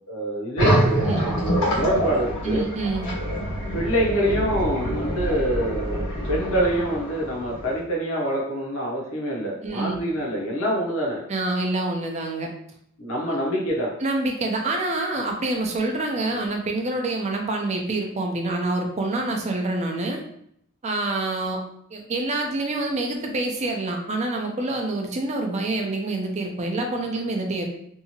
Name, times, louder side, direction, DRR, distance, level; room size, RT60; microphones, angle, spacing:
voice 1, 0.1-2.6 3.7-11.2 13.0-13.9, right 1 dB, 65° left, -3 dB, 0.7 m, -26 dB
sound 1, 0.6-7.8, equal, 85° left, 1.3 m, -25 dB
voice 2, 2.4-3.1 9.6-10.0 11.3-12.5 13.3-13.4 14.0-20.2 20.8-21.6 21.9-27.7, right 2 dB, 30° right, 2 dB, 0.4 m, -26 dB
2.7 x 2.4 x 2.7 m, 0.70 s
head